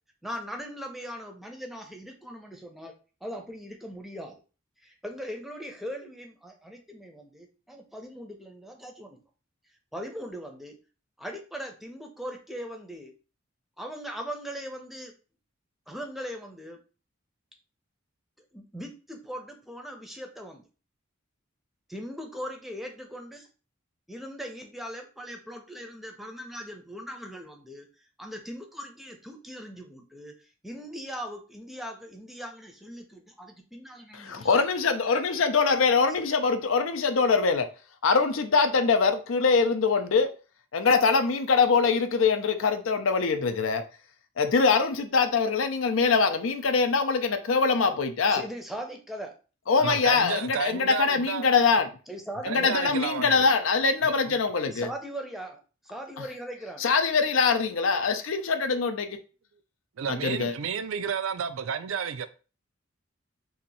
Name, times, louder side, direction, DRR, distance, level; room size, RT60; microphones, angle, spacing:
voice 1, 0.2-2.9 3.2-4.4 4.8-9.2 9.9-10.7 11.2-13.1 13.8-15.1 15.9-16.8 18.5-20.6 21.9-23.5 24.1-27.9 28.2-34.6 48.3-49.3 52.1-52.9 54.7-55.6 55.8-56.8, equal, ahead, 0.6 m, -39 dB
voice 2, 34.1-37.7 38.0-40.3 40.7-43.8 44.4-48.4 49.7-51.9 52.4-54.9 56.8-59.2 60.1-60.5, left 4 dB, 75° left, 0.5 m, -23 dB
voice 3, 49.8-51.5 52.4-53.5 54.0-54.4 60.0-62.3, right 7 dB, 90° right, 0.4 m, -32 dB
2.8 x 2.6 x 4.0 m
head